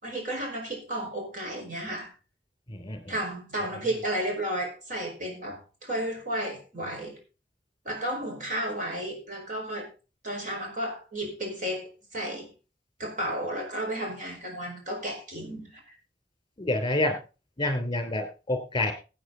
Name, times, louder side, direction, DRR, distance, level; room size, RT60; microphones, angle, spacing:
voice 1, 0.0-2.1 3.1-7.2 7.8-9.9 10.2-12.5 13.0-15.9, right 1 dB, 45° right, 0 dB, 5.2 m, -33 dB
voice 2, 16.6-17.2 17.6-18.9, left 2 dB, 25° left, 7 dB, 3.2 m, -27 dB
15.5 x 8.7 x 3.9 m, 0.32 s
head